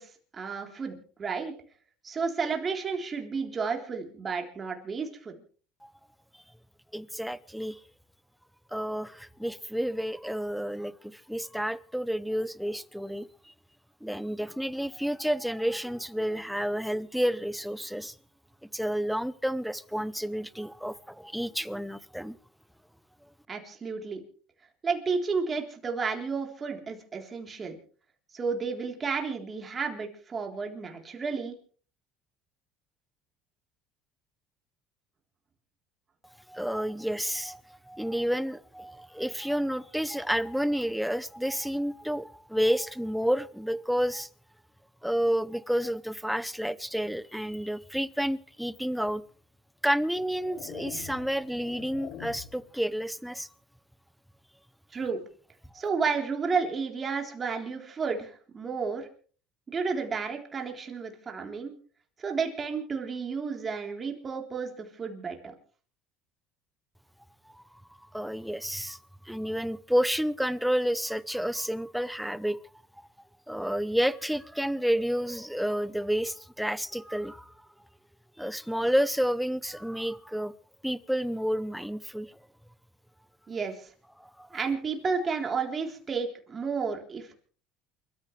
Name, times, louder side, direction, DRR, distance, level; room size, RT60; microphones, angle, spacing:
voice 1, 0.0-1.5 2.0-5.3 23.5-24.2 24.8-27.8 28.3-31.5 54.9-55.2 55.7-59.1 59.7-61.7 62.2-65.5 83.5-83.9 84.5-87.3, right 5 dB, 30° right, 3.7 m, -32 dB
voice 2, 6.9-7.8 8.7-13.3 14.0-18.1 18.7-22.4 36.5-44.3 45.0-49.2 49.8-53.5 67.5-67.6 68.1-69.0 69.3-72.6 73.5-77.5 78.4-80.5 80.8-82.3 84.2-84.6, equal, ahead, 0.7 m, -30 dB
sound 1, 49.1-49.2 50.0-52.7, left 9 dB, 70° left, 3.0 m, -45 dB
28.5 x 14.0 x 3.3 m
cardioid pair, 125°, 0 cm